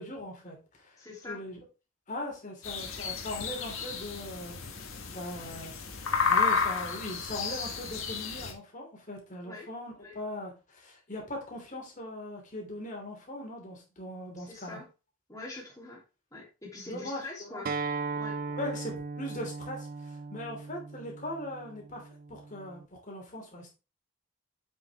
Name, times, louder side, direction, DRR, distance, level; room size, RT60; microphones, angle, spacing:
voice 1, 0.0-1.0 1.3-1.6 2.1-5.7 6.3-14.8 16.8-17.6 18.6-23.7, left 1 dB, 35° left, 0 dB, 2.9 m, -40 dB
voice 2, 1.0-1.4 9.4-9.7 10.0-10.2 14.4-14.9 15.3-16.0 16.3-17.7 18.1-18.4, left 2 dB, 15° left, -3 dB, 3.0 m, -44 dB
sound 1, 2.6-8.5, left 5 dB, 70° left, 1.6 m, -32 dB
Acoustic guitar, 17.7-22.9, right 4 dB, 40° right, 0.4 m, -38 dB
7.7 x 6.4 x 3.5 m, 0.31 s
head